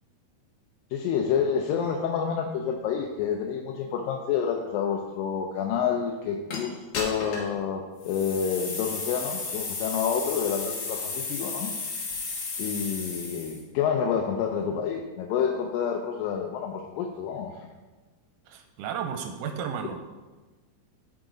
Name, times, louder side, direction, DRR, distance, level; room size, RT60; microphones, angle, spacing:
voice 1, 0.9-11.7 12.6-17.5, left 7 dB, 85° left, 2 dB, 2.4 m, -28 dB
sound 1, 6.5-6.6 6.9-7.5 8.0-13.6, left 4 dB, 65° left, 2.9 m, -34 dB
voice 2, 18.5-20.0, right 7 dB, 80° right, 6 dB, 2.0 m, -33 dB
13.5 x 4.9 x 3.8 m, 1.3 s
omnidirectional pair, 4.0 m